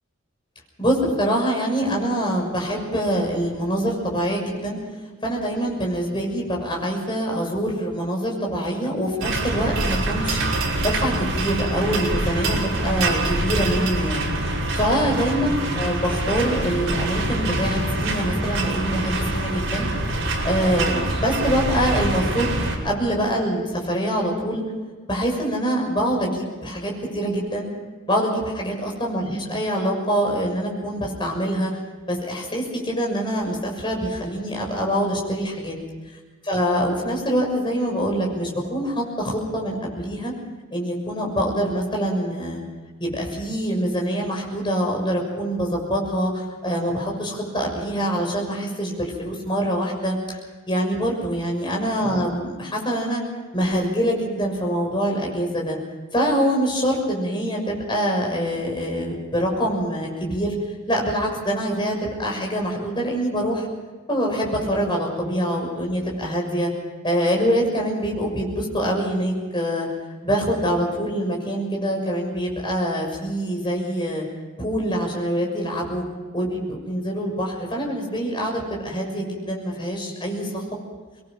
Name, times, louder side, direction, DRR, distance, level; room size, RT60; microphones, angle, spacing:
voice 1, 0.8-4.8 5.2-10.4 10.8-19.9 20.2-22.6 22.8-24.6 25.1-27.7 28.1-31.7 32.1-35.7 36.5-40.3 40.7-42.6 43.0-50.4 50.7-53.2 53.5-55.8 56.1-60.5 60.9-63.7 64.1-66.7 67.0-69.9 70.2-74.2 74.6-76.0 76.3-80.8, equal, 20° left, 0 dB, 6.5 m, -25 dB
sound 1, 9.2-22.8, right 2 dB, 70° right, 5.4 m, -25 dB
25.0 x 21.5 x 5.9 m, 1.4 s
head